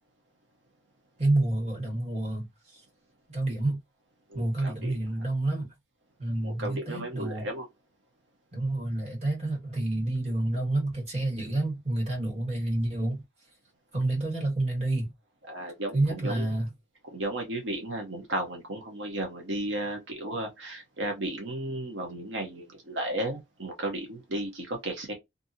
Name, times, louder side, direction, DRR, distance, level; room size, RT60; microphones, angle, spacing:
voice 1, 1.2-2.8 3.3-3.8 4.3-5.7 6.2-7.5 8.5-13.2 13.9-15.1 15.9-16.7, right 2 dB, 35° right, 1.6 m, -29 dB
voice 2, 4.3-5.0 6.4-7.7 15.5-16.5 17.1-25.1, right 1 dB, 80° right, 0.9 m, -34 dB
2.6 x 2.6 x 2.6 m
head